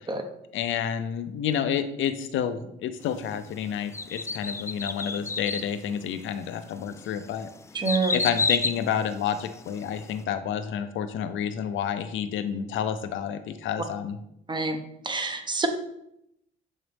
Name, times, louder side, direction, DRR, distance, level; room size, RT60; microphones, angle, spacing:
voice 1, 0.5-7.5 8.1-14.2, left 8 dB, 75° left, 10 dB, 0.6 m, -29 dB
sound 1, 3.9-5.7 6.3-6.4 7.0-9.8 10.1-10.2, left 3 dB, 15° left, 0.3 m, -30 dB
voice 2, 7.7-8.2 14.5-14.8 15.0-15.7, right 3 dB, 25° right, 6 dB, 0.9 m, -26 dB
7.3 x 3.9 x 3.4 m, 0.79 s
cardioid pair, 90°, 20 cm